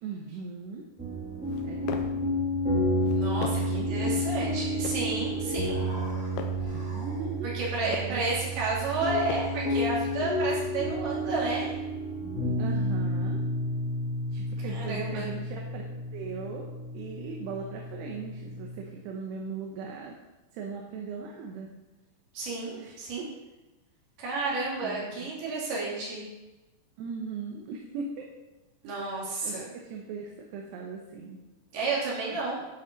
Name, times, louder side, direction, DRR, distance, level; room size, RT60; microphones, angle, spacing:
voice 1, 0.0-0.9 1.6-1.9 3.5-4.3 6.7-8.2 12.6-13.4 14.3-15.9 16.1-20.1 20.5-21.8 22.8-23.0 24.8-25.3 27.0-28.3 29.4-29.6 29.8-31.4 32.3-32.4, right 5 dB, 80° right, 1 dB, 3.1 m, -39 dB
sound 1, 1.0-18.8, equal, 5° right, 1.3 m, -31 dB
sound 2, 1.4-2.2 2.9-3.8 4.5-5.1 5.8-6.7 7.4-8.2 8.9-9.7, left 6 dB, 85° left, 2.8 m, -41 dB
voice 2, 3.2-5.8 7.4-11.7 14.6-15.3 22.3-23.3 24.2-26.3 28.8-29.7 31.7-32.6, right 3 dB, 65° right, -5 dB, 4.8 m, -31 dB
Human voice, 5.5-7.6 8.5-10.2, right 1 dB, 40° right, 3.2 m, -46 dB
12.5 x 6.1 x 5.3 m, 1.1 s
omnidirectional pair, 4.8 m